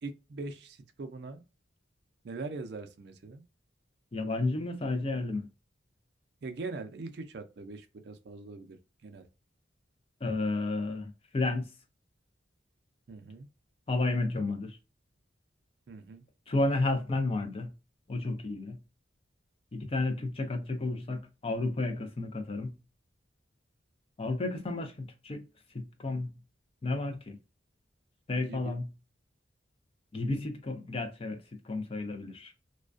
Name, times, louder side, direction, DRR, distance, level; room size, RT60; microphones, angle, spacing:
voice 1, 0.0-1.4 2.2-3.4 6.4-9.3 13.1-13.5 15.9-16.2 28.5-28.8, right 3 dB, 60° right, 0.4 m, -42 dB
voice 2, 4.1-5.5 10.2-11.7 13.9-14.8 16.5-17.7 18.1-18.8 19.7-22.7 24.2-25.5 25.7-26.3 26.8-27.4 28.3-28.9 30.1-31.4 31.6-32.5, left 2 dB, 30° left, 0.4 m, -32 dB
2.4 x 2.2 x 2.4 m
head